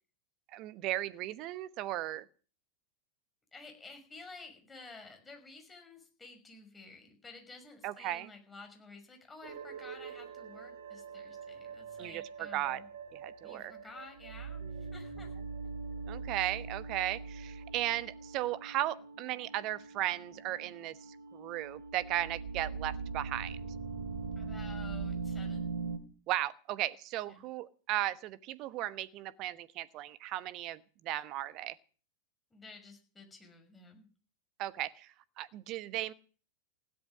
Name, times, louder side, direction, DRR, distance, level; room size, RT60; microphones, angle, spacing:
voice 1, 0.5-2.3 7.8-8.3 12.0-12.8 13.1-13.7 14.6-14.9 16.1-23.6 26.3-31.8 34.6-36.1, right 14 dB, 40° right, 16 dB, 1.1 m, -36 dB
voice 2, 3.5-12.9 13.4-15.3 24.4-25.7 27.2-27.4 32.5-34.1, left 3 dB, 15° left, 5 dB, 5.8 m, -52 dB
sound 1, 9.4-26.0, right 4 dB, 55° right, 2.3 m, -42 dB
16.5 x 12.0 x 6.4 m, 0.40 s
figure-of-eight pair, 90°, 0 cm